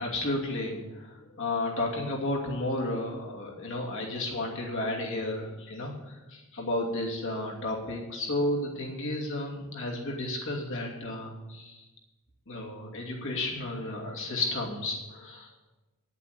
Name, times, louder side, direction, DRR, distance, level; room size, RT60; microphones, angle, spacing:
voice 1, 0.0-11.8 12.5-15.5, left 1 dB, 65° left, -2 dB, 2.7 m, -32 dB
9.5 x 8.2 x 8.1 m, 1.1 s
head